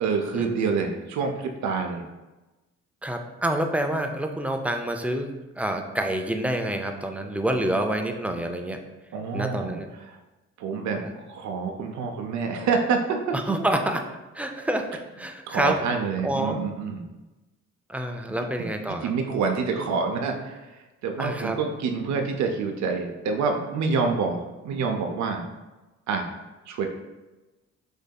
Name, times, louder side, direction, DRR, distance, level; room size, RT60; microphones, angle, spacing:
voice 1, 0.0-2.0 9.1-9.8 10.6-13.6 15.5-17.1 19.0-20.7 21.0-25.4 26.1-26.3 26.7-26.9, right 5 dB, 70° right, 4 dB, 0.6 m, -27 dB
voice 2, 3.0-5.3 5.6-8.8 9.3-9.9 11.0-11.1 13.3-14.1 14.3-15.8 16.2-16.6 17.9-19.1 21.2-21.6, right 1 dB, 5° right, 5 dB, 0.3 m, -27 dB
6.4 x 2.6 x 2.3 m, 1.1 s
cardioid pair, 90°, 30 cm